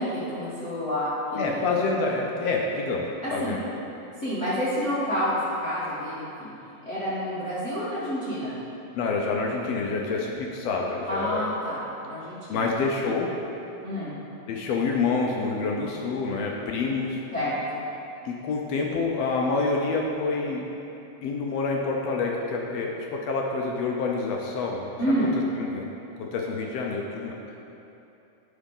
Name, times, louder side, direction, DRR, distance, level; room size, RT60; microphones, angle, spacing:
voice 1, 0.0-1.7 3.2-3.5 4.2-6.5 6.8-8.5 11.1-11.8 12.0-12.7 13.8-14.1 17.3-17.8 25.0-25.3, equal, 45° left, -11 dB, 0.9 m, -28 dB
voice 2, 1.4-3.0 3.3-3.8 8.9-11.5 12.5-13.3 14.5-17.2 18.2-20.6 21.2-24.9 25.6-25.9 26.2-27.3, left 4 dB, 80° left, -1 dB, 1.5 m, -27 dB
10.5 x 6.0 x 3.7 m, 2.9 s
omnidirectional pair, 3.6 m